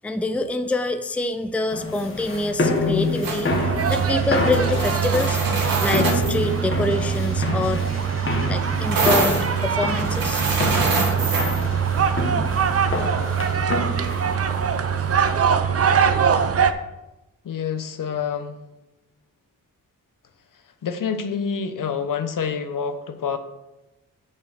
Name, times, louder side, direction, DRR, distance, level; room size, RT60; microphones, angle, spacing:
voice 1, 0.0-3.5 3.9-5.4 5.8-7.9 8.5-10.4, left 2 dB, 5° left, 8 dB, 0.5 m, -26 dB
sound 1, 1.7-15.6, left 3 dB, 35° left, 1.5 m, -28 dB
sound 2, 3.2-3.5 3.8-4.0 4.4-6.4 8.9-11.6, right 3 dB, 85° right, 2.1 m, -25 dB
sound 3, 3.5-16.7, right 7 dB, 45° right, 0.6 m, -23 dB
voice 2, 17.4-18.6 20.8-23.4, left 6 dB, 70° left, 9 dB, 0.9 m, -27 dB
6.7 x 5.5 x 6.5 m, 0.97 s
wide cardioid pair, 100°, 34 cm